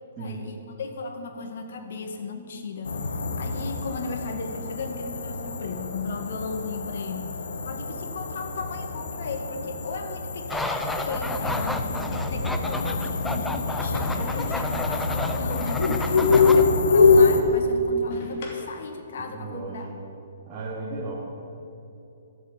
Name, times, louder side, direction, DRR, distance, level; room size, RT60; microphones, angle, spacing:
voice 1, 0.2-2.9 3.3-15.9 16.3-19.9, left 4 dB, 65° left, 5 dB, 1.9 m, -36 dB
sound 1, 2.8-17.4, left 4 dB, 85° left, 1.4 m, -25 dB
sound 2, 10.5-16.6, left 1 dB, 5° left, 0.6 m, -32 dB
sound 3, 11.3-12.0 14.0-14.6 16.0-16.5 18.1-18.9, left 2 dB, 50° left, 2.6 m, -41 dB
voice 2, 16.1-16.5 16.9-17.0 19.3-19.9 20.5-21.2, right 3 dB, 20° right, -10 dB, 3.0 m, -36 dB
12.5 x 7.3 x 9.4 m, 2.9 s
hypercardioid pair, 150°, 0 cm